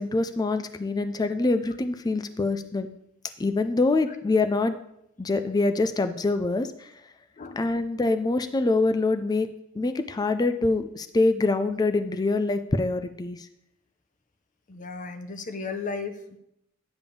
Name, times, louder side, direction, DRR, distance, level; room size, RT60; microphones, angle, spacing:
voice 1, 0.0-2.9 3.4-4.8 5.2-6.9 7.6-9.5 9.7-13.5, left 3 dB, 20° left, 10 dB, 0.4 m, -25 dB
voice 2, 14.7-16.4, left 4 dB, 40° left, 8 dB, 0.8 m, -35 dB
9.9 x 3.5 x 6.9 m, 0.79 s
head